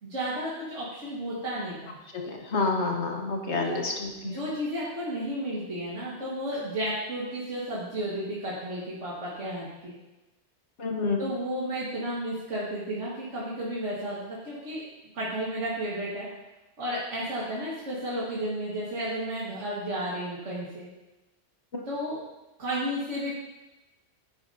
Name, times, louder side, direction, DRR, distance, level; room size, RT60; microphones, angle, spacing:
voice 1, 0.0-2.0 3.5-3.9 4.2-9.9 11.2-14.8 15.1-16.3 16.8-20.9 21.9-22.2 22.6-23.3, equal, 85° right, -8 dB, 2.2 m, -32 dB
voice 2, 2.1-4.4 10.8-11.2 21.7-21.8, left 3 dB, 70° left, 2 dB, 1.5 m, -29 dB
9.8 x 9.4 x 2.8 m, 1.0 s
omnidirectional pair, 1.2 m